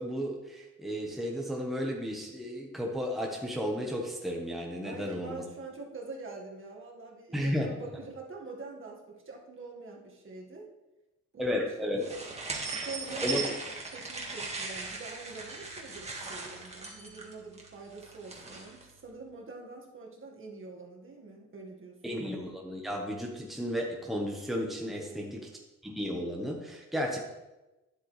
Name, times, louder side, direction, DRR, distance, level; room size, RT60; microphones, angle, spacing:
voice 1, 0.0-5.4 7.3-7.7 11.4-12.0 13.2-13.5 22.0-25.5 25.8-27.2, equal, ahead, 0 dB, 1.3 m, -33 dB
voice 2, 4.8-10.7 11.3-11.7 12.7-13.6 13.9-22.3 24.9-25.5, right 3 dB, 40° right, 0 dB, 1.9 m, -45 dB
sound 1, 12.0-18.8, right 3 dB, 20° right, 1.9 m, -38 dB
10.0 x 7.6 x 3.4 m, 1.0 s
cardioid pair, 90°, 30 cm